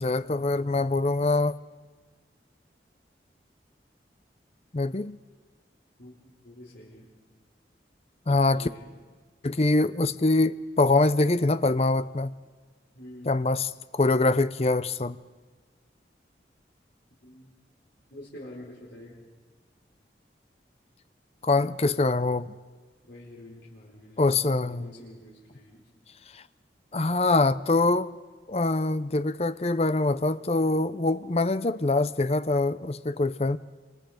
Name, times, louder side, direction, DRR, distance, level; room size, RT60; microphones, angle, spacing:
voice 1, 0.0-1.5 4.7-5.2 8.3-8.7 9.4-12.3 13.3-15.2 21.4-22.5 24.2-24.9 26.3-26.4 26.9-28.1 28.5-33.6, left 2 dB, 35° left, 0.6 m, -24 dB
voice 2, 6.0-7.1 8.3-9.0 12.9-13.4 17.2-17.5 18.1-19.2 23.0-25.9, left 1 dB, 85° left, 4.8 m, -47 dB
29.0 x 27.0 x 5.2 m
head